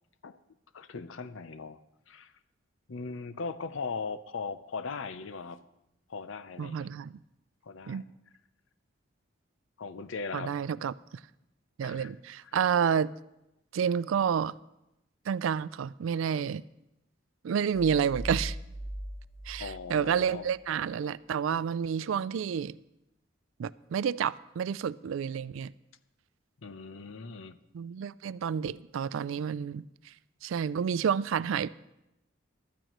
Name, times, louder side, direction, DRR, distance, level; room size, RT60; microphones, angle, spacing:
voice 1, 0.7-1.8 2.1-2.3 2.9-5.6 6.1-6.9 7.6-8.0 9.8-10.6 11.8-12.1 19.6-20.5 26.6-27.6, left 4 dB, 80° left, 0.6 m, -39 dB
voice 2, 6.6-7.2 7.9-8.0 10.3-10.9 11.8-13.1 13.7-14.5 15.3-16.6 17.4-18.6 19.5-22.8 23.6-25.7 27.7-30.1 30.4-31.7, right 7 dB, 80° right, 0.3 m, -30 dB
sound 1, 17.7-20.6, right 1 dB, 55° left, 4.5 m, -39 dB
15.5 x 12.5 x 3.0 m
head